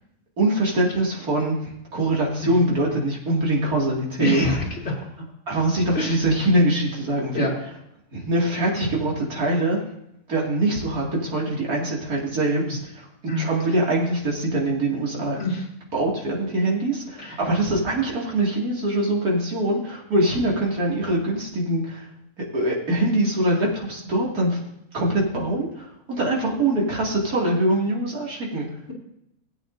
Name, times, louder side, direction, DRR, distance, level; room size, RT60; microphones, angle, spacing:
voice 1, 0.4-4.4 5.5-7.5 8.1-9.8 10.3-12.8 13.4-15.4 15.9-22.0 22.4-24.6 24.9-28.7, right 1 dB, 80° right, -3 dB, 2.9 m, -23 dB
voice 2, 4.2-5.0 5.9-6.2 7.3-7.5 13.3-13.5 15.4-15.7 17.2-17.4, left 2 dB, 45° left, -2 dB, 2.4 m, -26 dB
17.0 x 8.4 x 2.6 m, 0.79 s
omnidirectional pair, 1.6 m